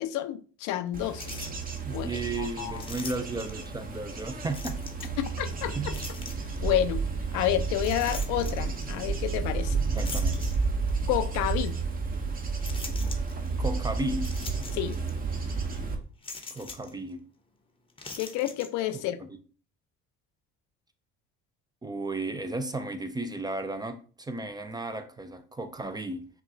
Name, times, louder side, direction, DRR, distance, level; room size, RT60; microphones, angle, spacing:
voice 1, 0.0-1.4 1.9-2.8 5.2-5.9 6.6-7.0 7.3-9.8 11.1-11.8 14.7-15.0 18.2-19.2, left 12 dB, 80° left, 0.5 m, -30 dB
Bird / Insect / Wind, 0.9-16.0, right 4 dB, 30° right, 0.8 m, -31 dB
sound 1, 1.2-1.8 2.7-3.7 4.5-5.2 5.9-6.6 7.8-8.9 10.0-11.0 11.6-11.7 12.6-13.5 14.2-15.1 15.4-15.5 16.2-16.9 17.9-18.7, left 4 dB, 20° left, 0.7 m, -42 dB
voice 2, 1.8-5.2 5.7-6.0 10.0-10.4 13.6-14.4 16.5-17.3 21.8-26.3, right 2 dB, 15° right, 0.4 m, -34 dB
5.8 x 2.2 x 2.7 m
cardioid pair, 95°, 29 cm